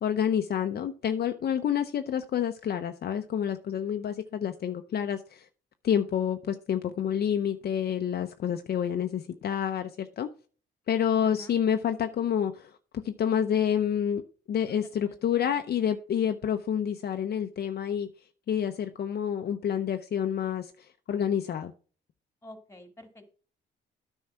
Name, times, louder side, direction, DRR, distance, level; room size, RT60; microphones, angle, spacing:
voice 1, 0.0-5.5 5.8-10.3 10.9-14.2 14.5-18.1 18.5-21.7, left 9 dB, 55° left, 0.7 m, -28 dB
voice 2, 11.2-11.5 14.7-15.5 22.4-23.2, left 1 dB, 15° left, 2.3 m, -50 dB
9.5 x 5.4 x 4.5 m
cardioid pair, 90°, 20 cm